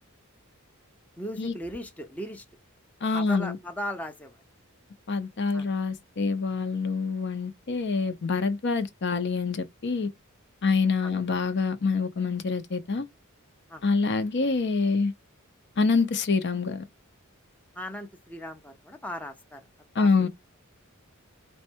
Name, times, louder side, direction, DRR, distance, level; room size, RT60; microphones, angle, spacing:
voice 1, 1.2-2.4 3.1-4.4 5.5-5.7 11.0-11.1 13.7-13.8 17.8-19.6 19.9-20.3, equal, 5° left, 0.5 m, -37 dB
voice 2, 3.0-3.6 5.1-10.1 10.6-13.1 13.8-15.1 15.8-16.8 19.9-20.3, left 4 dB, 55° left, 0.6 m, -26 dB
4.3 x 2.2 x 4.4 m
head